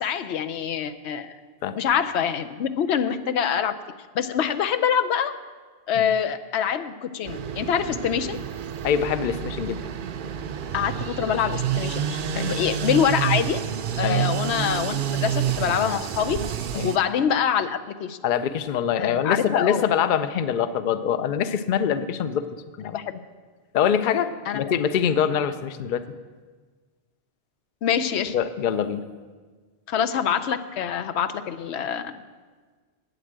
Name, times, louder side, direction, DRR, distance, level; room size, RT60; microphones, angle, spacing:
voice 1, 0.0-1.3 1.7-3.7 4.1-5.3 5.9-8.4 10.7-12.2 12.5-13.6 14.0-16.4 16.8-18.2 19.0-19.8 22.9-23.2 24.5-24.7 27.8-28.3 29.9-32.1, left 8 dB, 85° left, 10 dB, 0.9 m, -25 dB
sound 1, 7.3-17.0, right 9 dB, 60° right, 0.7 m, -29 dB
voice 2, 8.8-9.8 12.3-12.6 14.0-14.3 16.7-16.9 18.2-22.4 22.8-23.0 23.7-26.0 28.3-29.0, left 8 dB, 55° left, 12 dB, 0.7 m, -24 dB
8.8 x 8.1 x 8.7 m, 1.4 s
omnidirectional pair, 1.1 m